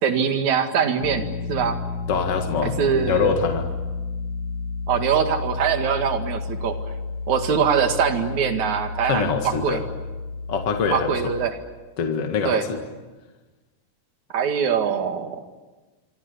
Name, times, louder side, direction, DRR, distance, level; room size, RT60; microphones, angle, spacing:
voice 1, 0.0-1.8 2.6-3.3 4.9-6.8 7.3-9.8 10.9-11.6 12.4-12.7 14.3-15.4, right 7 dB, 65° right, 6 dB, 3.4 m, -23 dB
sound 1, 1.0-11.5, left 4 dB, 65° left, 2.8 m, -31 dB
voice 2, 2.1-3.7 9.1-9.8 10.5-11.2 12.0-12.8, left 6 dB, 50° left, 4 dB, 2.7 m, -24 dB
27.0 x 25.0 x 8.4 m, 1.2 s
omnidirectional pair, 3.7 m